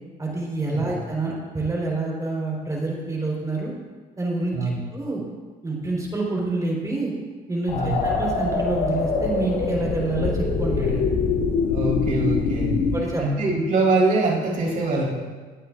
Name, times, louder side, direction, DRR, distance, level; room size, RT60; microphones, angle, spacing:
voice 1, 0.2-3.7 4.2-5.2 5.6-7.1 7.5-11.1 12.9-13.2, right 2 dB, 20° right, -3 dB, 3.8 m, -27 dB
voice 2, 4.5-4.8 7.7-8.0 11.7-12.9 13.2-15.1, right 3 dB, 55° right, -4 dB, 3.8 m, -23 dB
sound 1, 7.7-13.0, left 4 dB, 80° left, 2.4 m, -24 dB
19.5 x 8.9 x 2.5 m, 1.4 s
cardioid pair, 110°, 17 cm